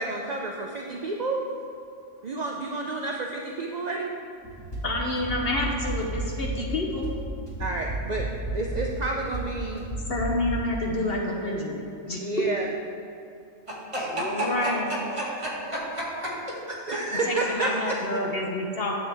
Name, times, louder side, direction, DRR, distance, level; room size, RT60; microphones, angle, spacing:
voice 1, 0.0-1.4 2.2-4.1 7.6-8.3 8.5-9.8 12.2-12.7 16.9-18.0, right 2 dB, 55° right, 0 dB, 0.5 m, -30 dB
sound 1, 4.4-10.7, right 2 dB, 20° left, 1.8 m, -32 dB
voice 2, 4.8-7.1 10.1-12.5 14.1-14.9 17.1-19.0, left 1 dB, 50° left, 0 dB, 1.0 m, -28 dB
voice 3, 13.7-14.7 15.2-16.3 16.7-17.0, right 1 dB, 25° right, -7 dB, 1.9 m, -31 dB
9.9 x 7.5 x 3.4 m, 2.6 s
omnidirectional pair, 1.4 m